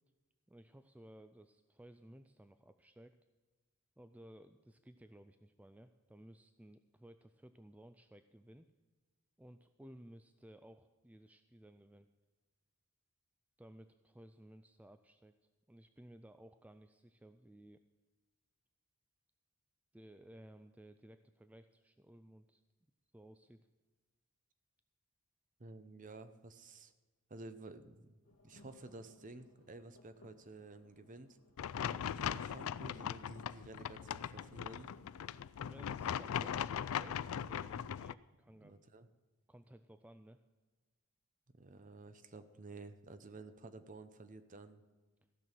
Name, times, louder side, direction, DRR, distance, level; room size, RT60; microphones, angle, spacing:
voice 1, 0.5-3.2 4.0-8.7 9.4-12.1 13.6-15.4 15.7-17.8 19.9-22.6 23.1-23.6 31.8-32.0 35.7-38.8 39.5-40.4, right 1 dB, 5° right, 9 dB, 0.3 m, -58 dB
voice 2, 25.6-26.9 27.3-31.4 32.3-34.9 38.6-39.1 41.6-44.8, right 2 dB, 35° right, 11 dB, 0.8 m, -52 dB
sound 1, 28.2-36.8, left 1 dB, 90° left, 1.6 m, -64 dB
sound 2, 31.6-38.1, left 9 dB, 75° left, 0.3 m, -39 dB
15.5 x 6.2 x 7.5 m, 1.3 s
head